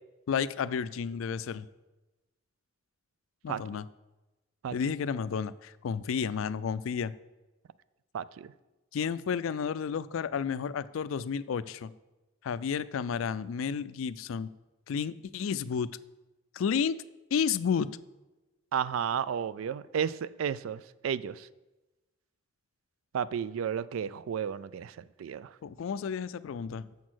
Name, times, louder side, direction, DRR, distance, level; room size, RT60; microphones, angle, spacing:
voice 1, 0.3-1.7 3.4-3.8 4.7-7.1 8.9-11.9 12.4-14.5 14.9-15.9 16.5-17.0 17.3-18.0 25.6-26.9, left 6 dB, 70° left, 0.4 m, -31 dB
voice 2, 3.5-3.8 4.6-4.7 8.1-8.5 18.7-21.5 23.1-25.5, right 8 dB, 75° right, 0.3 m, -33 dB
7.1 x 6.3 x 6.2 m
head